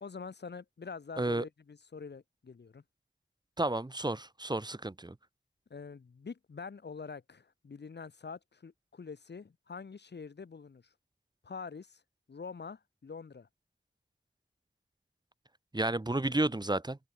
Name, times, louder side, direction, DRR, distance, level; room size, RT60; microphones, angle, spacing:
voice 1, 0.0-2.8 5.7-10.8 11.4-12.0 12.3-13.5, left 5 dB, 55° left, 0.7 m, -45 dB
voice 2, 3.6-5.1 15.7-17.0, right 2 dB, 20° right, 0.7 m, -31 dB
wide cardioid pair, 50°, 21 cm